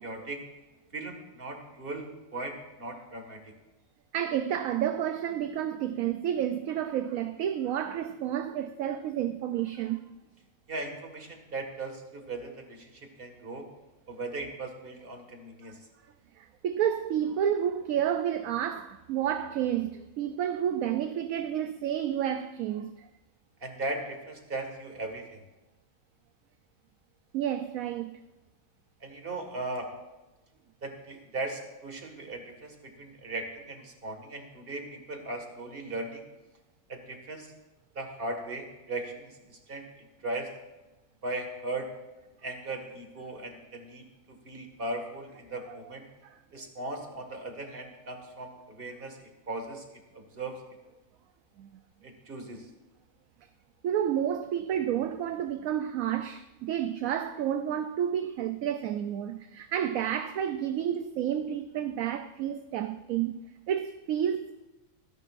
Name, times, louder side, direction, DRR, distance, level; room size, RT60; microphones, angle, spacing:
voice 1, 0.0-0.4 0.9-2.1 2.3-3.4 10.7-13.7 14.1-15.8 23.6-25.5 29.0-29.9 30.8-36.2 36.9-37.5 38.0-39.9 40.2-40.5 41.2-41.9 42.4-46.1 46.5-49.8 50.1-50.6 52.0-52.7, right 2 dB, 35° right, 2.0 m, -38 dB
voice 2, 4.1-10.0 16.4-23.1 27.3-28.1 46.3-46.4 51.6-51.8 53.8-63.4 63.7-64.7, right 10 dB, 70° right, 1.0 m, -30 dB
25.5 x 10.5 x 2.5 m
omnidirectional pair, 1.6 m